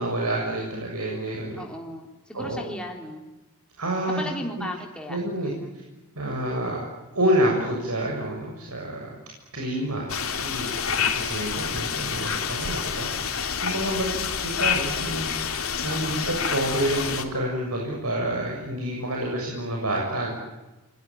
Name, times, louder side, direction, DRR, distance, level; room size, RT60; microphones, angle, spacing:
voice 1, 0.0-1.6 2.3-2.6 3.8-4.2 5.1-5.5 6.2-6.8 7.1-9.1 9.5-20.3, right 1 dB, 85° right, -1 dB, 7.2 m, -28 dB
voice 2, 1.6-3.2 4.2-5.7 15.9-16.2, left 1 dB, 5° left, 1 dB, 3.6 m, -36 dB
sound 1, 10.1-17.2, left 7 dB, 65° left, 3.2 m, -28 dB
28.5 x 22.5 x 9.3 m, 1.1 s
head